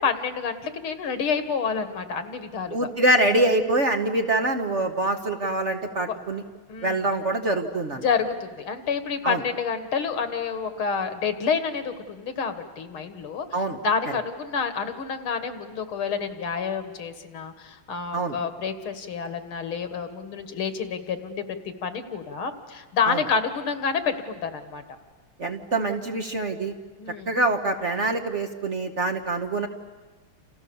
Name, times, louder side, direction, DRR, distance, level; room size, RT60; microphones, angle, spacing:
voice 1, 0.0-2.9 6.0-6.2 6.7-7.0 8.0-13.5 13.8-24.8 27.0-27.3, left 6 dB, 80° left, 9 dB, 2.5 m, -28 dB
voice 2, 2.7-6.4 6.8-8.1 9.2-9.4 13.5-13.8 18.1-18.4 23.1-23.2 25.4-26.7 27.3-29.7, right 2 dB, 40° right, 5 dB, 1.3 m, -25 dB
29.5 x 28.0 x 7.1 m, 1.3 s
omnidirectional pair, 2.3 m